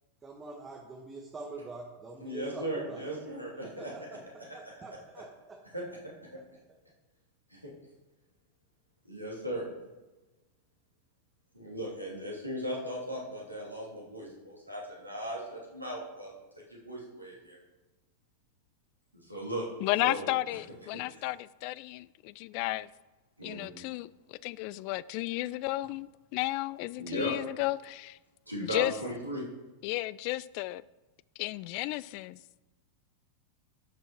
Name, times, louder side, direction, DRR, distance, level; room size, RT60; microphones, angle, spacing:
voice 1, 0.2-5.6, right 3 dB, 20° right, 1.5 m, -45 dB
voice 2, 2.2-3.9 5.7-5.8 7.6-7.7 9.0-9.7 11.5-17.6 19.1-19.6 20.0-20.6 21.1-21.2 23.4-23.7 27.0-27.3 28.5-29.5, equal, 90° right, 2.8 m, -37 dB
voice 3, 19.8-22.9 23.4-28.2 28.6-28.9 29.8-30.8 31.4-32.4, left 18 dB, 45° left, 0.3 m, -33 dB
11.5 x 6.2 x 4.5 m
figure-of-eight pair, 90°, 0 cm